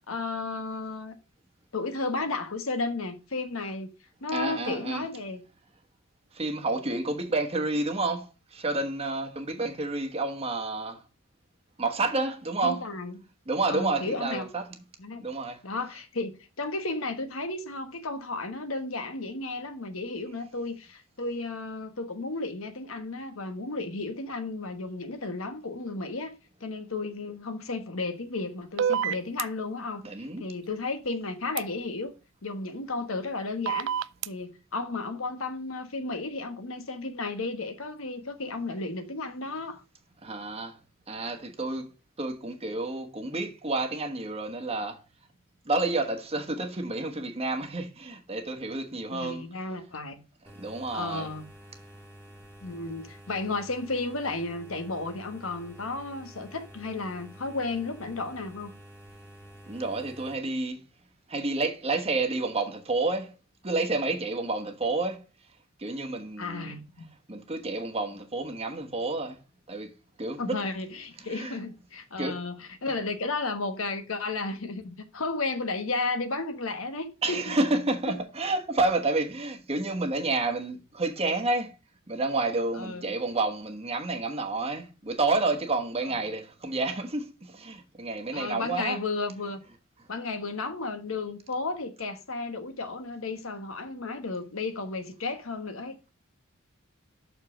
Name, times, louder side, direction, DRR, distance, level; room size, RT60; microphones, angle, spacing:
voice 1, 0.1-1.2 1.7-3.9 4.2-5.4 12.6-13.1 13.7-14.5 15.0-15.2 15.6-26.3 26.6-32.1 32.4-33.9 34.3-39.8 49.1-50.2 50.9-51.5 52.6-58.7 66.4-67.1 70.4-77.6 82.8-83.1 88.3-89.6 90.1-96.0, left 3 dB, 75° left, 1.3 m, -33 dB
voice 2, 4.3-5.1 6.3-11.0 11.8-12.9 13.5-14.8 15.2-15.6 15.9-16.0 30.0-30.4 40.2-40.8 41.1-41.9 42.2-45.0 45.6-49.4 50.6-51.3 59.7-60.8 61.3-63.3 63.6-65.2 65.8-66.8 67.3-69.4 69.7-69.9 70.2-70.7 71.2-71.6 72.2-72.4 72.9-73.0 77.2-81.8 82.1-89.0, right 2 dB, 30° right, 1.2 m, -30 dB
sound 1, 28.8-29.4 31.6-31.7 33.7-34.3, right 8 dB, 60° right, 0.3 m, -27 dB
sound 2, 50.5-60.4, right 1 dB, 10° left, 1.8 m, -49 dB
6.5 x 5.0 x 6.3 m
head